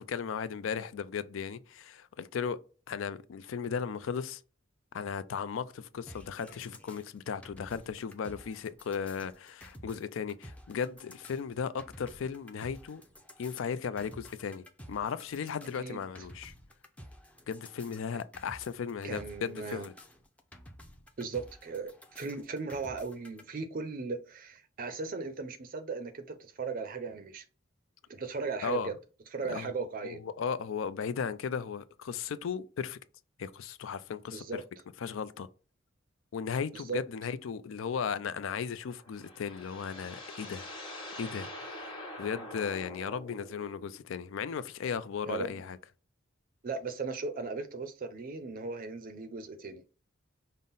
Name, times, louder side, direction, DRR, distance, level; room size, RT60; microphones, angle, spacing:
voice 1, 0.0-2.6 2.9-4.4 4.9-13.0 13.4-16.5 17.5-19.9 28.6-28.9 29.4-29.7 30.0-33.0 33.4-34.6 35.0-35.5 36.3-40.7 41.2-41.5 41.8-41.9 42.2-45.8, left 6 dB, 75° left, 0.4 m, -36 dB
sound 1, 6.1-23.4, equal, 5° left, 0.5 m, -52 dB
voice 2, 15.8-16.3 19.0-19.9 21.2-27.4 28.1-28.9 29.3-30.2 34.3-34.6 36.7-37.0 45.2-45.6 46.6-49.8, right 4 dB, 45° right, 0.5 m, -37 dB
sound 2, 38.8-44.0, left 1 dB, 25° left, 1.3 m, -45 dB
5.4 x 2.1 x 3.9 m
head